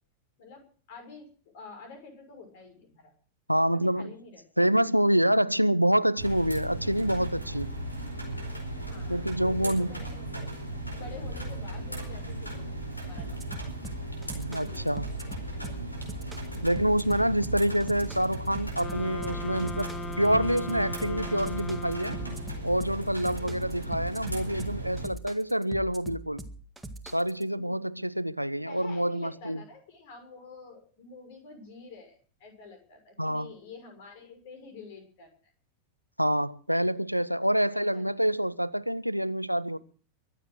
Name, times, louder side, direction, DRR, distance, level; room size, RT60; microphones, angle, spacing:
voice 1, 0.9-1.3 1.5-3.1 3.7-4.4 7.2-7.3 8.7-10.5 10.9-12.8 13.0-13.6 14.6-15.0 23.3-23.6 27.5-27.8 28.6-35.3 37.4-38.0, left 4 dB, 50° left, 6.1 m, -48 dB
voice 2, 3.5-4.1 4.6-7.7 9.1-9.9 14.3-15.1 16.6-22.2 22.6-26.4 27.0-29.6 33.2-33.5 36.2-39.8, equal, 90° right, 0.6 m, -27 dB
sound 1, 6.2-25.1, right 1 dB, 85° left, 4.6 m, -37 dB
sound 2, 13.2-27.4, right 2 dB, 10° right, 1.8 m, -42 dB
sound 3, 18.8-22.7, left 1 dB, 10° left, 1.1 m, -39 dB
23.0 x 8.0 x 6.3 m
figure-of-eight pair, 90°, 0 cm